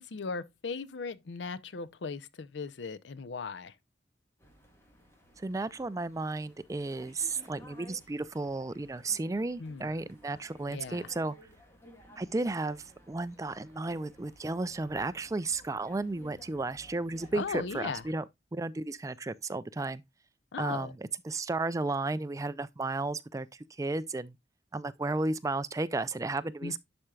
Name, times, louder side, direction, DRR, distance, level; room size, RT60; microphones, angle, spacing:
voice 1, 0.0-3.7 9.6-9.9 10.7-11.1 17.3-18.0 20.5-20.9 26.6-26.8, left 4 dB, 80° left, 0.6 m, -38 dB
sound 1, 4.4-18.1, left 1 dB, 15° left, 1.7 m, -57 dB
voice 2, 5.4-11.3 12.2-18.2 18.5-20.0 20.6-23.5 23.8-24.4 24.7-26.8, right 2 dB, 20° right, 0.3 m, -33 dB
11.5 x 4.4 x 2.3 m
head